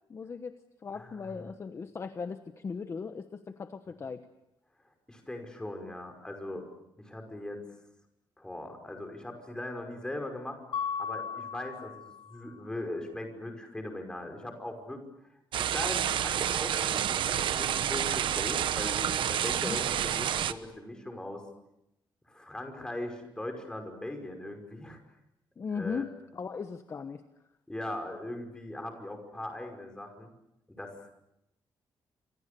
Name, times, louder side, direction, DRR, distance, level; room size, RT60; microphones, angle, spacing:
voice 1, 0.1-4.2 19.6-19.8 25.6-27.2, left 5 dB, 35° left, 8 dB, 1.2 m, -38 dB
voice 2, 0.9-1.5 5.1-6.7 7.0-7.6 8.4-10.6 11.0-15.0 15.6-21.4 22.2-25.0 25.7-26.0 27.7-30.3 30.7-31.1, left 1 dB, 10° left, 4 dB, 5.6 m, -40 dB
Mallet percussion, 10.7-12.5, left 6 dB, 75° left, 1.7 m, -36 dB
sound 1, 15.5-20.5, right 10 dB, 80° right, 1.1 m, -29 dB
29.0 x 27.0 x 6.9 m, 0.84 s
wide cardioid pair, 155°, 8 cm